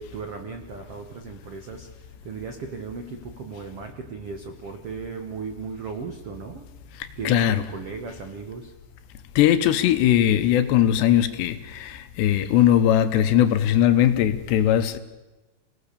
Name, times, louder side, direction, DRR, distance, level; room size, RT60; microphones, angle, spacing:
voice 1, 0.0-6.7 7.2-8.7, right 5 dB, 90° right, 1.3 m, -36 dB
voice 2, 7.2-7.6 9.4-15.0, left 11 dB, 80° left, 3.2 m, -20 dB
28.5 x 18.0 x 6.9 m
omnidirectional pair, 4.9 m